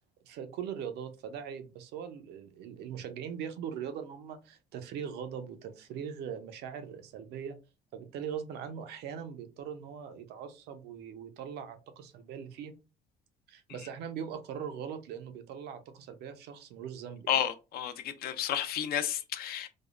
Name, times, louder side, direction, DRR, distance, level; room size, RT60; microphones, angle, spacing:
voice 1, 0.2-7.5 7.9-12.7 13.5-17.4, right 8 dB, 75° right, 0.5 m, -41 dB
voice 2, 17.3-19.7, left 10 dB, 65° left, 0.5 m, -31 dB
3.3 x 2.0 x 2.4 m
cardioid pair, 110°, 17 cm